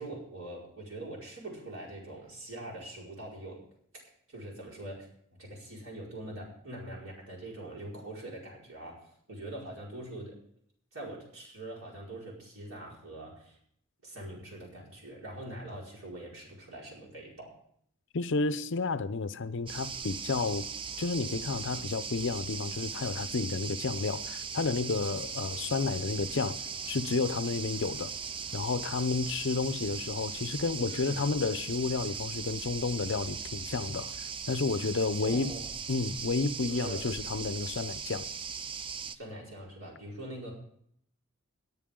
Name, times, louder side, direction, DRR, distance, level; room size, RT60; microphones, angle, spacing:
voice 1, 0.0-3.6 4.3-5.1 5.4-10.4 10.9-13.6 14.0-17.5 30.9-31.3 35.2-35.7 36.7-37.0 39.1-40.5, right 1 dB, 75° right, 5.1 m, -43 dB
voice 2, 18.1-20.7 21.0-26.6 26.9-28.1 28.5-34.1 34.5-35.5 35.9-38.3, left 4 dB, 60° left, 0.6 m, -31 dB
sound 1, 19.7-39.1, right 6 dB, 25° right, 0.4 m, -39 dB
18.5 x 9.5 x 3.8 m
head